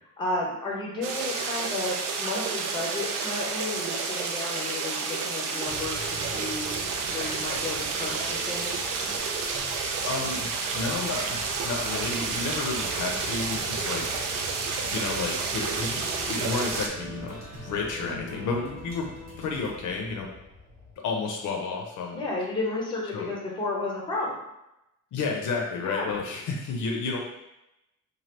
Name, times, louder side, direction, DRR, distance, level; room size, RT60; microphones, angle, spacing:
voice 1, 0.2-6.7 7.1-8.8 22.1-24.4 25.8-26.1, left 2 dB, 15° left, -3 dB, 0.6 m, -32 dB
sound 1, 1.0-16.9, right 4 dB, 80° right, 0.5 m, -30 dB
sound 2, 5.6-20.9, equal, 40° right, 0.8 m, -42 dB
voice 2, 10.0-14.1 14.9-16.0 16.3-19.1 19.4-20.3 21.0-22.2 23.1-23.3 25.1-27.2, left 4 dB, 65° left, 1 dB, 0.6 m, -31 dB
3.2 x 2.3 x 2.8 m, 0.88 s
cardioid pair, 180°, 32 cm